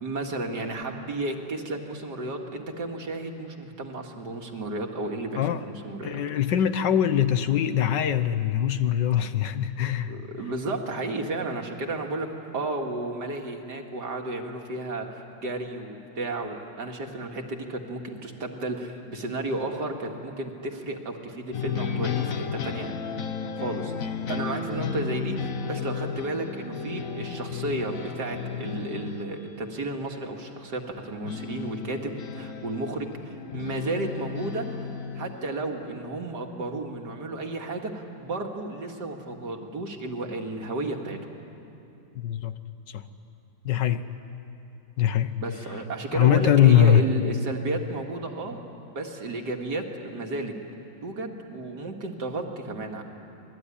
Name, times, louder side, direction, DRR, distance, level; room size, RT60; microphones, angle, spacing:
voice 1, 0.0-6.2 9.1-9.3 10.1-12.3 12.5-22.9 23.6-23.9 24.3-34.7 35.2-41.2 45.4-48.6 48.9-50.6 51.0-53.0, right 2 dB, 60° right, 2 dB, 2.6 m, -33 dB
voice 2, 5.3-5.7 6.0-10.1 42.1-42.5 42.9-43.0 43.6-44.0 45.0-45.4 46.1-47.0, left 10 dB, 70° left, 11 dB, 1.5 m, -22 dB
sound 1, 21.5-30.0 31.2-35.6, left 6 dB, 50° left, 1.4 m, -33 dB
27.0 x 21.0 x 10.0 m, 2.8 s
omnidirectional pair, 2.0 m